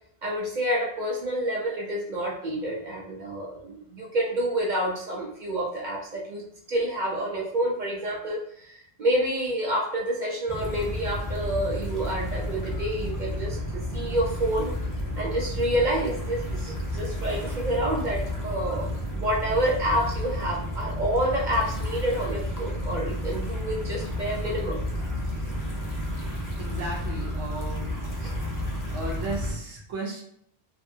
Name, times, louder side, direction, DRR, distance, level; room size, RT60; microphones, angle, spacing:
voice 1, 0.2-6.4 6.7-14.7 15.2-18.9 19.1-24.8 28.2-28.4, right 1 dB, 50° right, -3 dB, 0.6 m, -28 dB
sound 1, 10.5-29.5, equal, 25° left, 0.4 m, -31 dB
voice 2, 26.6-27.9 28.9-30.2, right 2 dB, 85° right, -3 dB, 1.0 m, -35 dB
2.6 x 2.5 x 2.7 m, 0.69 s
omnidirectional pair, 1.2 m